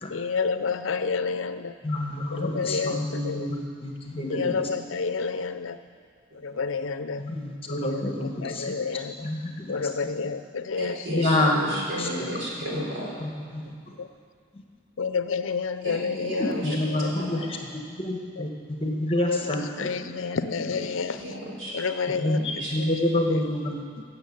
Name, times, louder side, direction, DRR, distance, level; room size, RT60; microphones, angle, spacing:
voice 1, 0.1-1.8 2.3-3.5 4.3-5.8 6.3-7.3 7.7-9.3 9.7-11.6 14.0-14.1 15.0-17.1 18.4-18.5 19.2-21.2 21.7-22.4 22.8-22.9 23.3-23.5, left 5 dB, 80° left, 11 dB, 0.6 m, -30 dB
voice 2, 1.8-4.5 7.2-8.7 9.2-9.7 11.1-11.6 12.0-12.1 12.7-12.8 13.2-13.7 16.4-17.4 17.9-18.5 18.8-19.9 22.2-23.8, left 1 dB, 30° left, 1 dB, 1.4 m, -27 dB
voice 3, 4.4-4.8 6.3-6.4 8.7-8.8 10.8-13.2 13.6-14.0 15.8-17.5 20.8-21.8 22.3-22.9, equal, 65° right, -4 dB, 4.0 m, -35 dB
16.0 x 7.1 x 8.6 m, 2.1 s
head